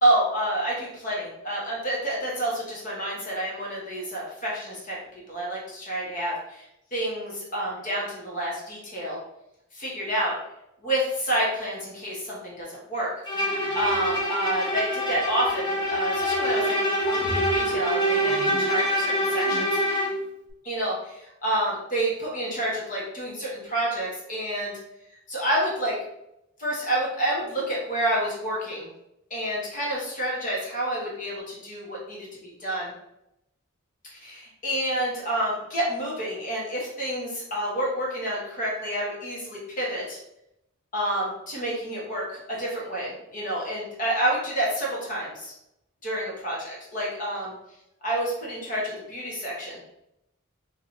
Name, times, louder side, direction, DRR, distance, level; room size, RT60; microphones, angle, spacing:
voice 1, 0.0-6.7 6.9-9.2 9.7-10.3 10.8-13.1 13.7-19.7 20.6-24.7 25.3-26.0 26.6-28.9 29.3-32.9 34.1-40.2 40.9-45.5 46.0-47.5 48.0-49.8, right 1 dB, 40° left, -5 dB, 1.1 m, -29 dB
Bowed string instrument, 13.3-20.2, equal, 20° left, 0.7 m, -25 dB
2.8 x 2.6 x 4.3 m, 0.83 s
head